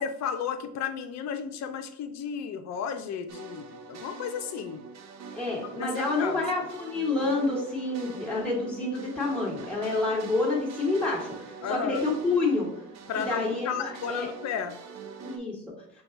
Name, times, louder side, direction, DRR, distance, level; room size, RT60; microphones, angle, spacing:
voice 1, 0.0-4.8 5.7-6.4 11.6-12.0 13.1-14.8, left 7 dB, 55° left, 8 dB, 0.7 m, -33 dB
sound 1, 3.3-15.4, right 4 dB, 50° right, 0.7 m, -44 dB
voice 2, 5.3-11.4 11.7-12.7 13.2-14.3 15.2-15.6, left 3 dB, 5° left, -4 dB, 1.6 m, -28 dB
5.4 x 2.3 x 3.8 m, 0.72 s
supercardioid pair, 80°, 33 cm